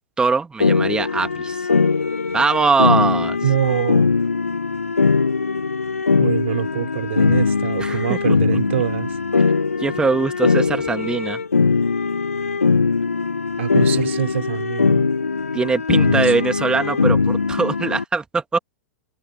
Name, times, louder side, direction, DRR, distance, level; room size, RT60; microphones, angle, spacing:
voice 1, 0.2-1.7 2.3-3.4 7.8-8.2 9.8-11.4 15.5-18.6, right 4 dB, 10° right, 1.9 m, -21 dB
sound 1, 0.6-18.0, left 4 dB, 80° left, 1.6 m, -20 dB
voice 2, 3.4-4.1 6.2-9.1 13.6-15.1 16.1-16.3, right 11 dB, 60° right, 3.7 m, -24 dB
figure-of-eight pair, 100°, 8 cm